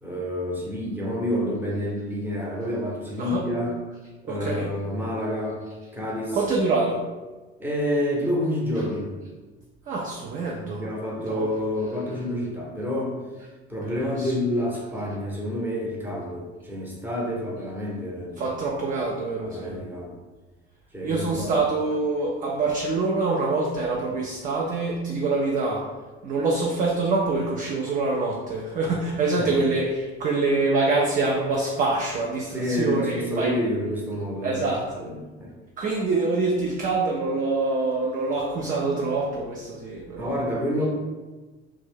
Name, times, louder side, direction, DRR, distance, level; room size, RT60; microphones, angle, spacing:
voice 1, 0.0-3.8 4.2-5.6 5.9-6.4 7.6-9.1 10.8-13.2 13.7-18.6 19.4-20.1 20.9-21.6 29.3-29.6 32.5-34.7 35.0-35.5 40.2-40.9, left 1 dB, 5° right, -3 dB, 0.8 m, -28 dB
voice 2, 4.3-4.8 6.3-7.0 9.9-10.8 11.3-11.5 14.2-14.3 18.4-19.8 21.0-25.9 26.2-33.6 34.4-35.0 35.8-40.5, right 3 dB, 25° right, -1 dB, 0.3 m, -25 dB
2.5 x 2.2 x 3.4 m, 1.3 s
figure-of-eight pair, 55°, 33 cm